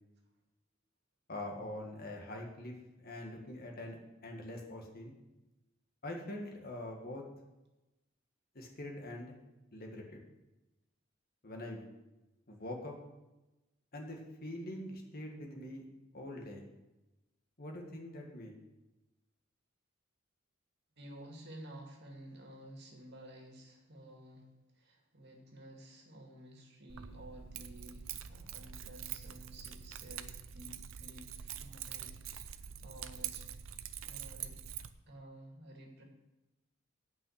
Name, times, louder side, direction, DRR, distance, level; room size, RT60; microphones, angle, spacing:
voice 1, 1.3-5.2 6.0-7.2 8.6-9.4 9.7-10.2 11.4-11.9 12.5-13.0 13.9-15.8 16.1-16.7 17.6-18.6, left 1 dB, 45° left, 1 dB, 1.9 m, -44 dB
voice 2, 21.0-33.5 34.0-34.6 35.1-36.0, right 1 dB, 55° right, 1 dB, 2.1 m, -53 dB
Keys jangling, 26.9-34.9, right 9 dB, 70° right, 0.6 m, -45 dB
9.0 x 5.6 x 8.0 m, 1.0 s
head